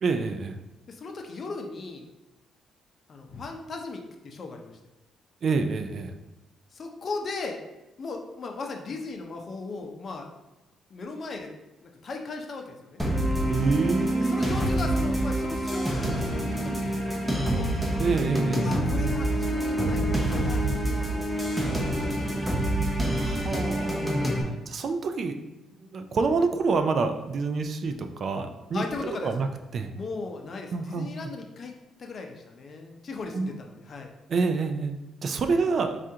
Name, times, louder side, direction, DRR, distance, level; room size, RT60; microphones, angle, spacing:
voice 1, 0.0-0.6 5.4-6.1 13.5-14.8 18.0-18.7 23.2-24.4 24.7-28.8 29.2-29.5 29.7-29.9 30.7-31.1 33.3-33.5 34.3-34.9 35.2-36.0, right 4 dB, 55° right, 7 dB, 0.3 m, -27 dB
voice 2, 0.9-2.0 3.1-4.8 6.7-7.6 8.0-10.3 10.9-11.5 11.8-13.0 14.2-17.7 18.5-20.6 20.9-21.4 22.0-22.4 24.3-24.7 28.7-29.3 29.9-31.7 32.0-34.1 35.5-35.6, left 3 dB, 45° left, 3 dB, 0.6 m, -37 dB
sound 1, 13.0-24.4, right 1 dB, 10° right, 0.7 m, -26 dB
4.6 x 2.4 x 2.7 m, 1.0 s
cardioid pair, 90°, 0 cm